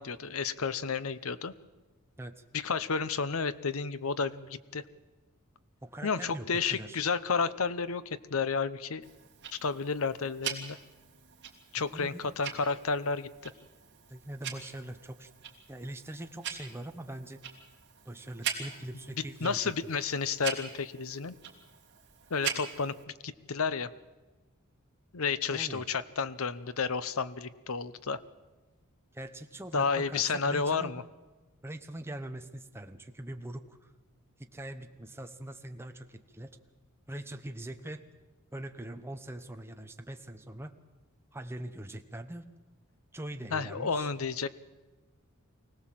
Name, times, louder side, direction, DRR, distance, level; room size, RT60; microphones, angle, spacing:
voice 1, 0.0-1.5 2.5-4.8 6.0-9.0 9.5-10.8 11.7-13.5 19.4-21.3 22.3-22.9 23.2-23.9 25.1-28.2 29.7-31.0 43.5-44.5, left 5 dB, 70° left, 15 dB, 0.8 m, -31 dB
voice 2, 5.8-7.0 11.7-12.2 14.1-15.3 15.7-17.4 18.0-19.7 25.5-25.8 29.1-30.9 31.6-33.9 34.4-36.6 37.1-38.0 38.5-40.7 41.3-42.5 43.1-44.1, right 1 dB, 10° right, 6 dB, 1.0 m, -42 dB
Tick-tock, 9.0-23.0, right 8 dB, 50° right, 3.0 m, -42 dB
24.5 x 18.0 x 7.6 m, 1.2 s
head